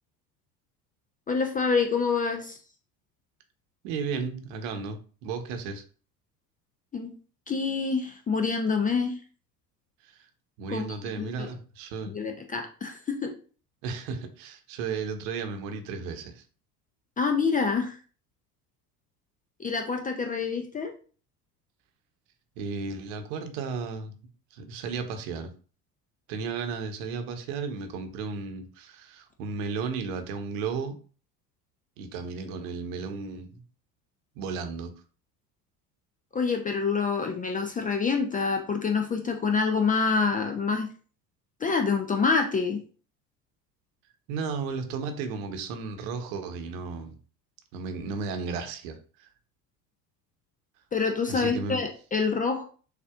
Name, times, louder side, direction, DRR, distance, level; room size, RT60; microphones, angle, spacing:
voice 1, 1.3-2.6 6.9-7.1 7.5-9.2 10.7-10.8 11.2-11.5 12.1-13.3 17.2-18.0 19.6-20.9 36.3-40.9 41.6-42.8 50.9-52.7, left 5 dB, 15° left, 4 dB, 0.5 m, -26 dB
voice 2, 3.8-5.8 10.0-10.3 10.6-12.1 13.8-16.4 22.6-24.1 24.5-25.5 26.3-31.0 32.0-33.6 34.4-34.9 44.3-47.1 47.7-49.3 51.3-51.8, right 5 dB, 55° right, 6 dB, 1.0 m, -34 dB
6.4 x 2.6 x 2.4 m, 0.39 s
figure-of-eight pair, 70°, 50 cm